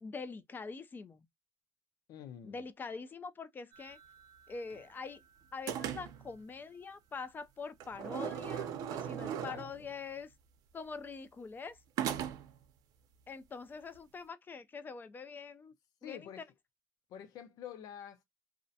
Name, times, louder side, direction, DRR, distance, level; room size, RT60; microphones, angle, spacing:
voice 1, 0.0-1.3 2.4-4.0 4.5-5.2 5.5-10.3 10.7-11.8 13.3-15.7 16.0-16.4, left 5 dB, 30° left, 0.4 m, -44 dB
voice 2, 2.1-2.7 9.2-9.9 16.0-16.5 17.1-18.2, left 9 dB, 75° left, 0.6 m, -48 dB
sound 1, 3.7-5.2 5.7-6.3 7.8-9.9 12.0-12.6, right 9 dB, 75° right, 0.5 m, -39 dB
2.4 x 2.1 x 2.6 m
cardioid pair, 100°, 7 cm